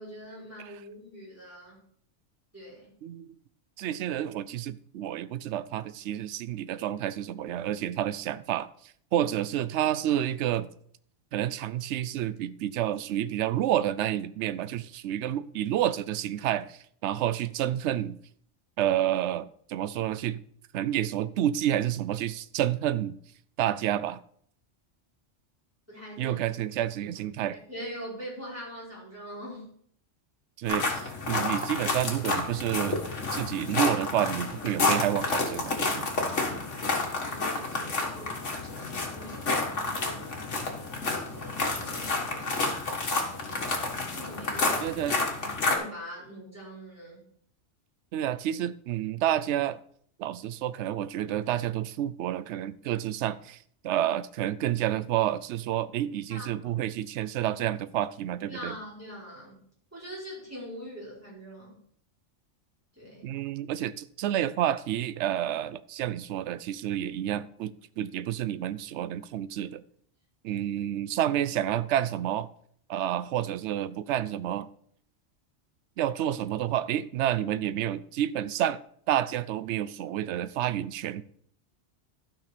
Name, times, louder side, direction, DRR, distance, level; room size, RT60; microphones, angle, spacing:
voice 1, 0.0-1.8 2.5-2.9 25.9-26.4 27.7-29.7 36.6-38.4 39.1-43.7 44.1-45.0 45.6-47.2 56.3-56.5 58.5-59.6 59.9-61.8 63.0-63.3 70.5-70.6, equal, 10° right, 4.8 m, -43 dB
voice 2, 3.0-3.3 3.8-8.7 9.1-10.7 11.3-18.2 18.8-20.4 20.7-23.2 23.6-24.2 26.2-27.6 30.6-33.0 33.3-36.1 44.8-45.2 48.1-49.8 50.2-53.6 53.8-58.8 63.2-69.8 70.4-72.5 72.9-74.7 76.0-78.8 79.1-81.2, right 11 dB, 75° right, 0.8 m, -29 dB
sound 1, 30.7-45.8, left 3 dB, 80° left, 2.0 m, -30 dB
12.5 x 5.8 x 5.1 m
omnidirectional pair, 1.2 m